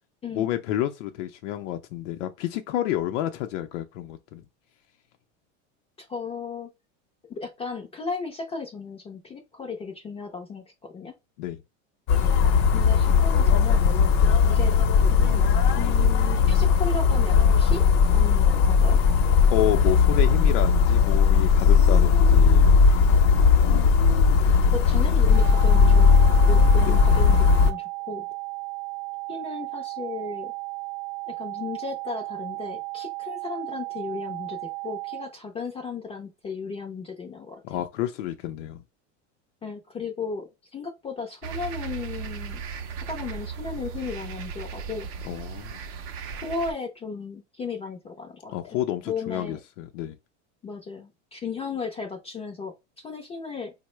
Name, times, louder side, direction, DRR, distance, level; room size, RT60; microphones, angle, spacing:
voice 1, 0.3-4.4 11.4-11.6 19.4-22.6 24.4-24.7 26.8-27.0 37.6-38.8 45.2-45.8 48.5-50.2, left 12 dB, 85° left, 0.6 m, -30 dB
voice 2, 6.0-6.7 7.3-11.1 12.7-13.9 14.4-14.8 15.1-17.8 18.1-19.0 23.7-23.9 24.7-26.1 26.5-28.3 29.3-30.5 31.3-37.8 39.6-42.6 43.1-45.1 46.4-48.8 49.1-49.6 50.6-53.7, left 4 dB, 20° left, 0.4 m, -35 dB
sound 1, 12.1-27.7, left 5 dB, 50° left, 0.7 m, -18 dB
sound 2, 25.3-35.3, right 25 dB, 85° right, 0.6 m, -35 dB
sound 3, 41.4-46.7, right 6 dB, 40° right, 0.5 m, -36 dB
4.4 x 2.1 x 3.0 m
supercardioid pair, 145°, 35 cm